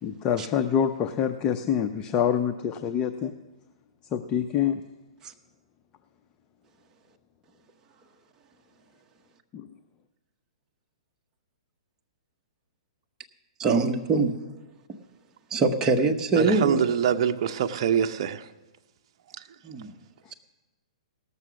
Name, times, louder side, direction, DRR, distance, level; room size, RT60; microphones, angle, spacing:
voice 1, 0.0-3.3 4.1-4.8 9.5-9.7 20.3-20.4, left 8 dB, 25° left, 7 dB, 0.5 m, -26 dB
voice 2, 13.6-14.4 15.5-16.8 19.6-19.9, right 3 dB, 20° right, 3 dB, 1.0 m, -23 dB
voice 3, 16.4-18.4, right 8 dB, 50° right, 7 dB, 0.6 m, -24 dB
18.0 x 6.9 x 6.2 m, 1.1 s
hypercardioid pair, 145°, 3 cm